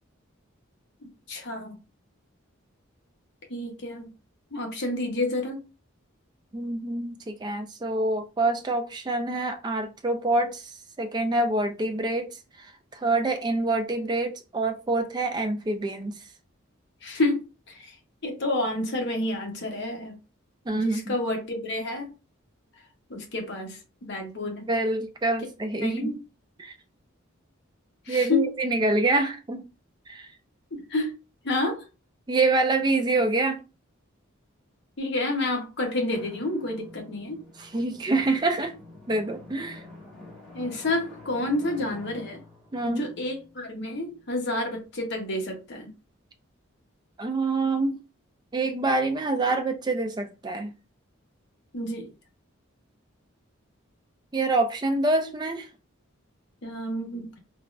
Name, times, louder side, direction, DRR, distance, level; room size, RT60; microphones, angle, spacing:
voice 1, 1.3-1.8 3.5-4.1 4.5-5.6 17.0-17.9 18.2-20.2 20.7-22.1 23.1-23.8 24.1-24.7 25.8-26.2 28.1-28.5 30.7-31.2 31.4-31.8 35.0-37.4 40.5-42.4 42.8-45.9 51.7-52.1 56.6-57.4, left 2 dB, 55° left, 0.8 m, -29 dB
voice 2, 6.5-10.7 11.0-12.7 12.9-16.1 20.7-21.1 24.7-26.2 26.6-26.7 28.1-29.7 30.1-30.3 32.3-33.6 37.6-38.7 39.1-39.8 42.7-43.1 47.2-48.0 48.5-50.7 54.3-55.7, right 2 dB, 20° right, 0.3 m, -26 dB
Drum, 36.1-44.4, left 2 dB, 5° left, 1.1 m, -47 dB
3.4 x 2.0 x 2.4 m
head